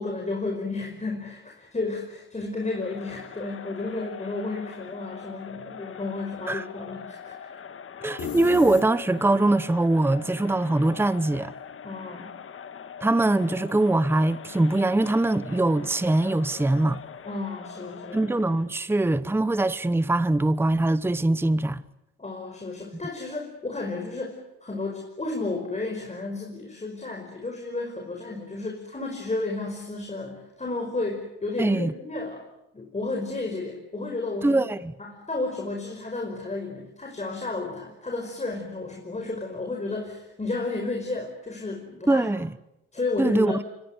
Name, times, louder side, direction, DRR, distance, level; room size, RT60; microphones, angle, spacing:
voice 1, 0.0-7.5 11.8-12.3 17.3-18.2 22.2-32.4 32.7-34.6 35.0-42.3 42.9-43.6, left 3 dB, 25° left, 5.4 m, -32 dB
Crowd, 2.6-18.8, left 7 dB, 45° left, 1.7 m, -43 dB
voice 2, 8.0-11.5 13.0-17.0 18.1-21.8 31.6-31.9 34.4-34.9 42.1-42.5 43.2-43.6, right 2 dB, 10° right, 0.9 m, -22 dB
sound 1, 8.2-9.4, left 7 dB, 70° left, 4.7 m, -33 dB
28.0 x 24.5 x 8.2 m
cardioid pair, 90°, 30 cm